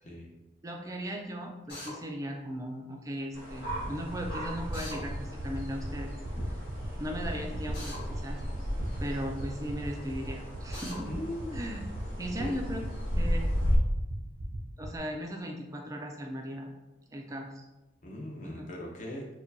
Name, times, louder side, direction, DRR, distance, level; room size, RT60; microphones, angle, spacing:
voice 1, 0.0-0.3 11.1-11.6 12.4-12.5 18.0-19.3, left 1 dB, 40° left, -1 dB, 0.6 m, -39 dB
voice 2, 0.6-6.2 7.0-8.4 9.0-11.1 11.5-11.9 12.2-12.8 13.2-13.6 14.8-16.7 17.1-17.7 18.4-18.7, equal, 15° right, 2 dB, 0.3 m, -37 dB
Drill, 1.7-1.9 4.7-5.0 7.7-8.0 10.7-11.0, left 1 dB, 55° left, 1.5 m, -41 dB
sound 1, 3.3-13.8, equal, 85° left, 1.1 m, -35 dB
sound 2, 3.7-15.0, right 3 dB, 70° right, 0.5 m, -40 dB
4.4 x 2.3 x 2.6 m, 1.0 s
head